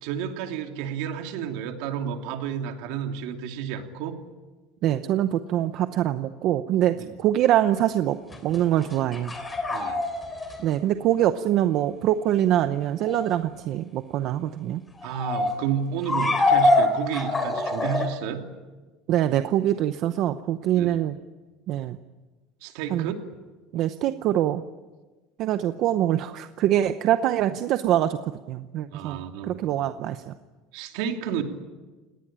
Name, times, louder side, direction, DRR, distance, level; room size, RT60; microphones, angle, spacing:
voice 1, 0.0-4.2 7.0-7.1 9.7-10.0 15.0-18.4 20.7-21.0 22.6-23.1 28.9-29.6 30.7-31.4, right 8 dB, 60° right, 5 dB, 2.8 m, -31 dB
voice 2, 4.8-8.2 8.4-9.4 10.6-14.8 19.1-21.2 21.7-22.0 22.9-23.1 23.7-24.6 25.4-30.3, right 12 dB, 40° right, 10 dB, 0.8 m, -24 dB
sound 1, 8.3-10.7 13.0-13.3 14.9-15.5 16.0-18.1, left 2 dB, 10° left, 3.0 m, -24 dB
29.5 x 19.0 x 8.9 m, 1.3 s
cardioid pair, 175°, 0 cm